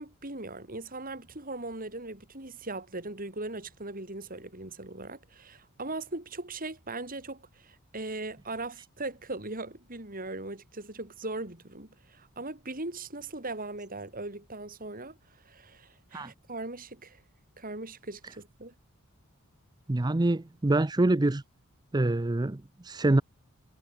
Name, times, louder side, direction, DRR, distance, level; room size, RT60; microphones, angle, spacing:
voice 1, 0.0-15.2 15.4-17.2 17.6-18.7, right 2 dB, 40° right, 4.5 m, -39 dB
voice 2, 19.9-21.4 21.9-23.2, right 2 dB, 20° right, 0.5 m, -25 dB
head